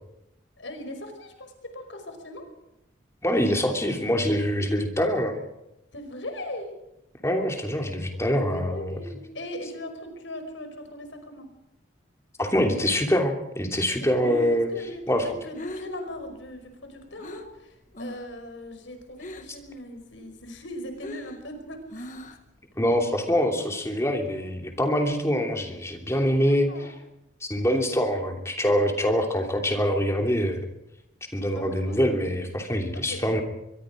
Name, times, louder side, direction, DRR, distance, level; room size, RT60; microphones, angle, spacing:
voice 1, 0.6-2.5 5.9-6.7 8.5-11.5 14.0-22.2 26.4-26.9 31.5-32.5 32.9-33.4, left 1 dB, 75° left, 6 dB, 5.1 m, -39 dB
voice 2, 3.2-5.4 7.2-8.9 12.4-14.7 15.1-15.3 22.7-26.7 27.4-30.7 31.3-33.4, equal, 15° left, 3 dB, 3.0 m, -24 dB
Breathing, 14.2-17.6 17.9-18.4 18.6-19.7 20.0-22.6, left 1 dB, 40° left, 1.7 m, -41 dB
24.0 x 22.5 x 5.1 m, 0.85 s
head